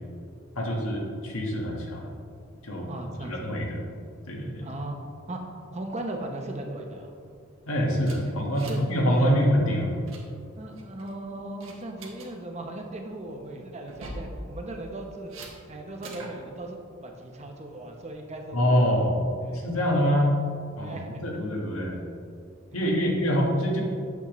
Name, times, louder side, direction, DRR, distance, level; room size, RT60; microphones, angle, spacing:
voice 1, 0.6-2.1 2.6-2.9 3.3-3.8 4.3-4.7 7.7-10.0 18.5-19.2 19.5-20.4 20.8-22.0 22.7-23.8, equal, 90° left, -1 dB, 1.4 m, -25 dB
voice 2, 2.9-3.5 4.6-5.0 5.3-7.1 8.7-8.8 9.2-9.3 10.6-15.3 15.7-19.0 19.4-19.7 20.8-21.2 22.7-23.1, right 1 dB, 30° right, 2 dB, 0.7 m, -37 dB
sound 1, 8.1-9.0 9.2-9.4 9.8-10.2 10.8-11.1 11.6-12.3 13.8-14.3 15.3-15.5 16.0-16.4, right 2 dB, 70° right, 1.2 m, -42 dB
8.3 x 6.9 x 3.0 m, 2.4 s
head